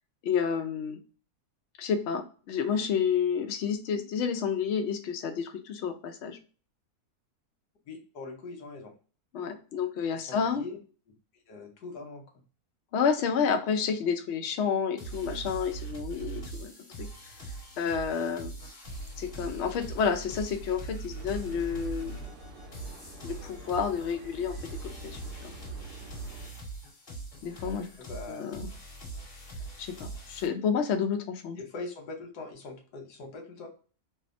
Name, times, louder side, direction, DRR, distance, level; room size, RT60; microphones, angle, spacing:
voice 1, 0.2-1.0 1.8-6.4 9.3-10.7 12.9-16.7 17.0-17.1 17.8-18.5 19.2-22.2 23.2-24.5 24.8-25.5 27.4-27.9 28.3-28.7 29.8-31.6, left 6 dB, 65° left, 5 dB, 0.7 m, -30 dB
voice 2, 7.9-8.9 10.1-10.8 11.5-12.3 28.0-28.5 31.6-33.7, left 3 dB, 90° left, 3 dB, 1.4 m, -42 dB
sound 1, 15.0-30.5, right 3 dB, 40° left, 1.5 m, -41 dB
sound 2, 21.1-26.5, equal, 80° right, 1.3 m, -47 dB
3.4 x 2.0 x 2.4 m, 0.38 s
omnidirectional pair, 1.7 m